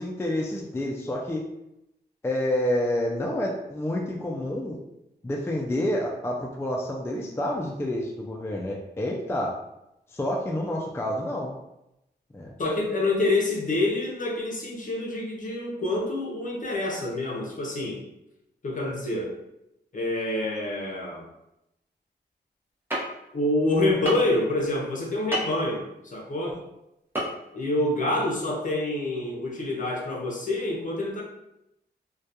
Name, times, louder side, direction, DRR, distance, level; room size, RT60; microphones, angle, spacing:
voice 1, 0.0-1.4 2.2-4.8 5.2-9.6 10.1-11.6 12.3-12.5, left 1 dB, 15° left, -1 dB, 0.3 m, -28 dB
voice 2, 12.6-18.0 18.6-19.3 19.9-21.3 23.3-26.7 27.5-31.2, left 2 dB, 50° left, -1 dB, 0.7 m, -27 dB
sound 1, 22.9-23.0 24.1-24.3 25.3-25.5 27.1-27.3 27.6-27.7, equal, 10° right, 0.8 m, -27 dB
2.2 x 2.2 x 2.8 m, 0.87 s
cardioid pair, 70°, 18 cm